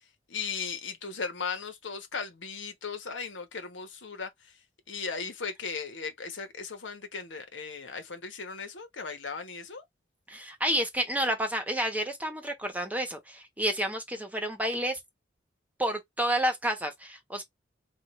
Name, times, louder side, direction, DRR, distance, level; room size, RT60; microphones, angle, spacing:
voice 1, 0.0-4.6 4.9-9.8, left 5 dB, 80° left, 1.2 m, -37 dB
voice 2, 10.3-15.0 15.8-17.4, right 1 dB, 10° right, 1.1 m, -30 dB
4.6 x 2.5 x 3.1 m
head